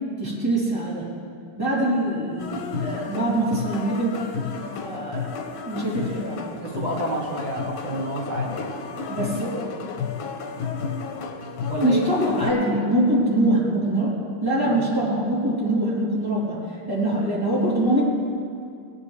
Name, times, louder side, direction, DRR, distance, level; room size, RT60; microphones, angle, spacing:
voice 1, 0.2-1.1 1.6-4.3 4.8-6.4 9.1-9.6 11.8-18.0, right 1 dB, 10° right, -8 dB, 3.3 m, -24 dB
sound 1, 2.4-12.5, left 5 dB, 90° left, 1.7 m, -32 dB
voice 2, 6.6-8.6 11.7-12.0 14.7-14.8, right 2 dB, 70° right, -4 dB, 2.2 m, -29 dB
18.5 x 9.8 x 3.3 m, 2.3 s
omnidirectional pair, 2.1 m